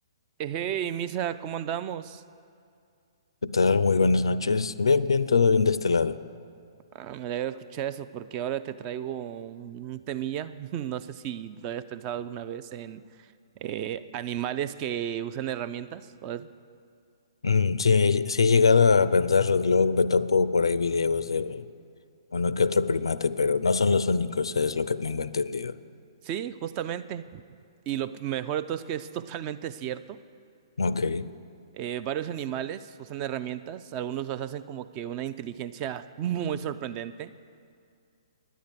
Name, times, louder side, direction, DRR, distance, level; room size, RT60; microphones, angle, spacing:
voice 1, 0.4-2.2 6.9-13.0 13.6-16.5 26.2-27.4 27.9-30.2 31.7-37.3, right 10 dB, 25° right, 0.3 m, -33 dB
voice 2, 3.4-6.2 17.4-21.6 22.3-25.8 30.8-31.3, left 4 dB, 65° left, 0.4 m, -23 dB
10.0 x 9.2 x 8.0 m
figure-of-eight pair, 120°, 3 cm